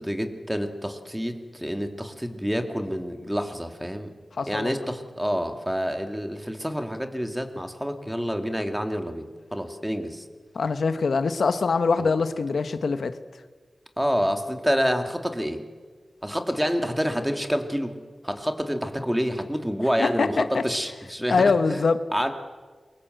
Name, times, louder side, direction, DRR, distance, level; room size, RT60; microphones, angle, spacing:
voice 1, 0.0-4.1 4.5-9.3 9.5-10.2 12.0-12.1 14.0-15.6 16.2-18.0 18.2-21.4 21.7-21.8 22.1-22.3, equal, 5° right, 6 dB, 2.4 m, -28 dB
voice 2, 4.4-4.7 10.5-13.1 20.0-20.6 21.3-22.0, left 4 dB, 80° left, 10 dB, 1.3 m, -23 dB
28.0 x 23.5 x 7.9 m, 1.4 s
wide cardioid pair, 95°, 0 cm